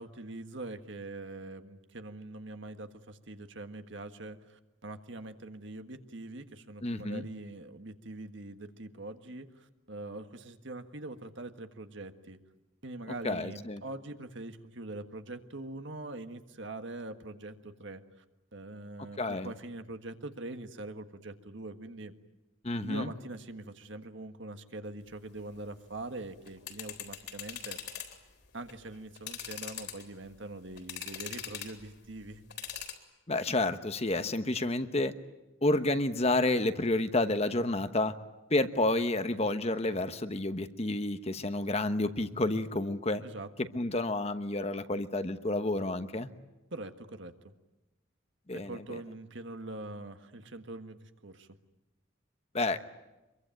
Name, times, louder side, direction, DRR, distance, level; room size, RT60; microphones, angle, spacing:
voice 1, 0.0-12.4 12.8-18.2 18.5-22.2 22.8-27.8 28.5-32.4 43.2-43.7 46.7-47.5 48.5-51.5, right 2 dB, 60° right, 8 dB, 1.6 m, -43 dB
voice 2, 6.8-7.2 13.2-13.8 19.2-19.5 22.6-23.1 33.3-35.1 35.6-38.1 38.5-43.2 43.7-46.3 48.5-48.8 52.5-52.8, left 2 dB, 30° left, 10 dB, 1.1 m, -30 dB
sound 1, 26.4-28.2 28.6-28.7 29.2-30.3 30.8-31.8 32.5-33.0, left 9 dB, 55° left, 3.6 m, -41 dB
25.5 x 23.0 x 9.1 m, 1.0 s
head